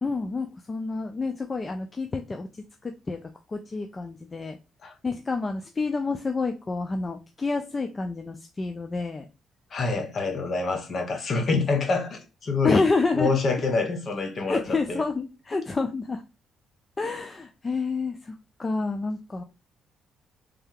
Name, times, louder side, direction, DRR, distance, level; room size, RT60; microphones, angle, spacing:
voice 1, 0.0-2.5 2.8-3.2 3.5-4.6 5.0-9.3 12.6-13.4 14.5-16.2 17.0-19.4, left 3 dB, 30° left, 0.4 m, -28 dB
voice 2, 9.7-12.8 13.1-15.0, left 3 dB, 50° left, 1.0 m, -26 dB
3.3 x 2.7 x 3.6 m
cardioid pair, 90°, 0 cm